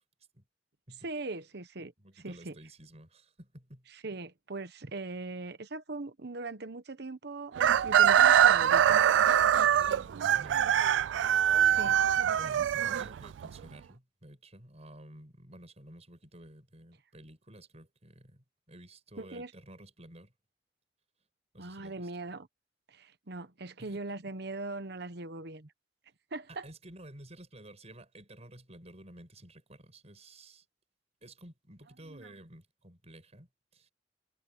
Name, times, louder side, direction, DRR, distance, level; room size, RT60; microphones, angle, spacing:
voice 1, 1.0-1.9 2.2-2.6 3.9-7.5 7.8-9.0 11.6-12.0 19.2-19.5 21.6-22.5 22.9-25.7 26.3-26.7 32.1-32.3, right 2 dB, 65° right, 1.1 m, -40 dB
voice 2, 2.0-3.9 9.9-10.8 11.7-20.3 21.5-22.1 23.8-24.0 26.6-30.6 31.2-33.9, right 1 dB, 40° right, 6.1 m, -52 dB
Chicken rooster, 7.6-13.5, right 10 dB, 85° right, 0.3 m, -23 dB
head